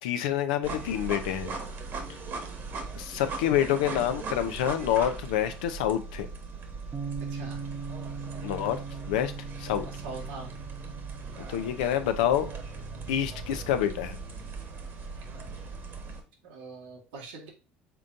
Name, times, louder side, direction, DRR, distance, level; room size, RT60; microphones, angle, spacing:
voice 1, 0.0-1.6 2.9-6.3 8.4-8.8 9.1-9.3 9.6-9.9 11.4-12.5 13.1-14.2, left 10 dB, 85° left, 9 dB, 0.6 m, -27 dB
sound 1, 0.6-16.2, right 4 dB, 55° right, 1.3 m, -39 dB
Bass guitar, 6.9-13.2, right 5 dB, 35° right, 0.9 m, -40 dB
voice 2, 7.3-7.6 9.8-10.5 16.4-17.5, right 3 dB, 90° right, -1 dB, 1.7 m, -43 dB
5.6 x 3.8 x 2.5 m, 0.33 s
supercardioid pair, 85°, 4 cm